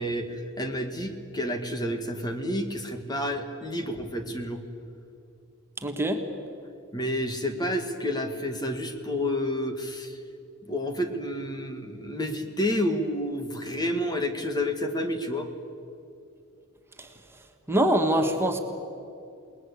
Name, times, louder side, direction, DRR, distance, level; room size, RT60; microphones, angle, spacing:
voice 1, 0.0-4.6 6.9-10.2 10.7-15.5, left 1 dB, 20° left, 6 dB, 1.7 m, -30 dB
voice 2, 5.8-6.2 17.7-18.6, right 1 dB, 10° right, 4 dB, 1.6 m, -23 dB
29.0 x 20.0 x 8.3 m, 2.6 s
head